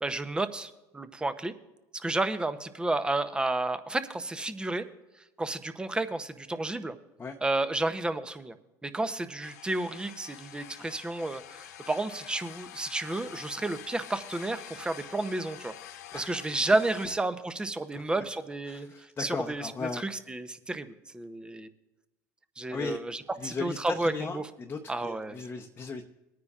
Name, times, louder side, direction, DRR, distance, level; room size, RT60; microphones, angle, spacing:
voice 1, 0.0-1.5 2.0-4.9 5.4-7.0 7.4-8.5 8.8-15.7 16.1-18.9 19.2-21.7 22.6-24.5 24.9-25.4, right 2 dB, 10° right, 11 dB, 0.7 m, -31 dB
sound 1, 9.4-17.1, left 11 dB, 90° left, 0.6 m, -46 dB
voice 2, 18.7-20.0 22.7-23.0 23.4-26.0, left 4 dB, 25° left, 1 dB, 0.8 m, -37 dB
21.5 x 9.5 x 2.4 m, 1.0 s
supercardioid pair, 100°, 9 cm